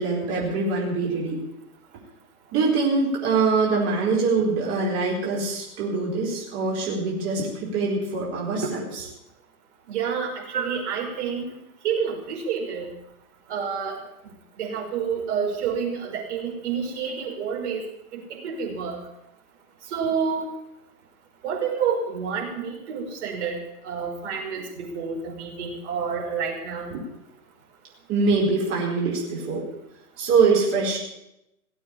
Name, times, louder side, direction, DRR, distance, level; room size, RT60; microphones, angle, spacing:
voice 1, 0.0-1.4 2.5-9.1 10.5-10.7 26.9-27.0 28.1-29.6 30.2-31.0, right 4 dB, 30° right, -4 dB, 4.5 m, -24 dB
voice 2, 9.9-11.5 11.8-12.9 13.5-14.0 14.6-17.8 18.1-19.0 19.9-20.5 21.4-23.6 23.8-26.9, right 6 dB, 50° right, 0 dB, 5.6 m, -29 dB
17.5 x 8.6 x 8.7 m, 0.86 s
hypercardioid pair, 130°, 45 cm